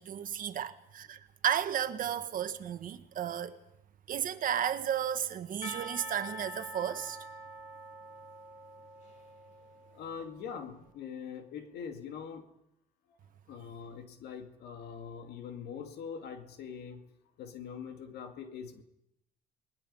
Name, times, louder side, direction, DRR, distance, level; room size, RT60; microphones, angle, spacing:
voice 1, 0.0-3.6 4.1-7.2, right 9 dB, 55° right, 1.5 m, -33 dB
Percussion / Church bell, 5.6-10.4, equal, 45° left, 3.6 m, -46 dB
voice 2, 9.9-12.5 13.5-17.0 17.4-18.8, left 7 dB, 70° left, 2.3 m, -43 dB
28.5 x 20.5 x 5.6 m
cardioid pair, 110°, 17 cm